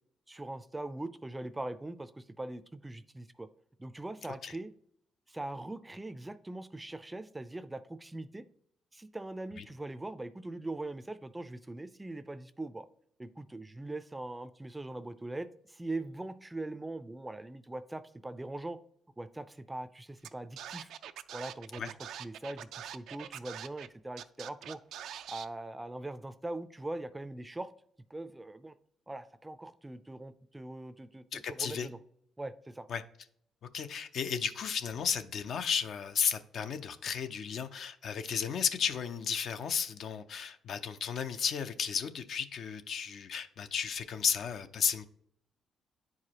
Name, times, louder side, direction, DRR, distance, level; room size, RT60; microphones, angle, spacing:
voice 1, 0.3-3.5 3.8-4.7 5.3-8.4 8.9-12.9 13.2-18.8 19.2-20.9 21.3-21.9 22.2-24.8 25.3-27.7 28.1-28.7 29.1-32.0 32.4-32.9, right 2 dB, 15° right, 0.4 m, -41 dB
Scratching (performance technique), 20.2-20.3 20.6-23.9 24.2-25.5, right 10 dB, 80° right, 0.3 m, -44 dB
voice 2, 31.3-31.9 32.9-33.0 33.7-45.0, left 7 dB, 65° left, 0.5 m, -33 dB
10.0 x 4.8 x 2.9 m
cardioid pair, 90°, 0 cm